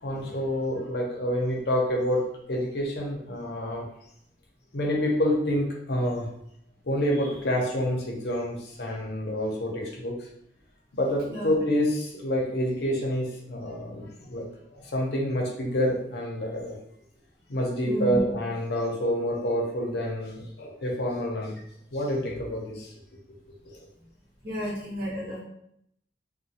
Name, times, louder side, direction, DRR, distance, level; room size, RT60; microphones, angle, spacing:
voice 1, 0.0-2.2 2.5-3.8 4.7-6.3 6.9-10.2 10.9-14.5 14.7-16.7 17.5-21.5 21.9-22.9 23.6-23.8, equal, 65° left, -1 dB, 0.6 m, -28 dB
voice 2, 11.2-11.6 17.8-18.2 24.4-25.4, equal, 55° right, -7 dB, 1.2 m, -32 dB
3.0 x 2.1 x 2.8 m, 0.73 s
head